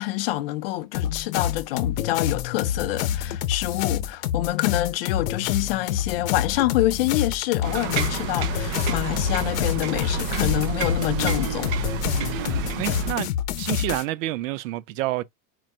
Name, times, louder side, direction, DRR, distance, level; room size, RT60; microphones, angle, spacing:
voice 1, 0.0-11.7, left 16 dB, 45° left, 0.4 m, -26 dB
sound 1, 0.9-14.0, left 10 dB, 70° left, 0.8 m, -28 dB
sound 2, 7.6-13.1, right 5 dB, 30° right, 0.7 m, -29 dB
voice 2, 12.1-13.3 13.6-15.2, right 16 dB, 70° right, 0.6 m, -29 dB
4.6 x 2.5 x 4.3 m
supercardioid pair, 180°, 41 cm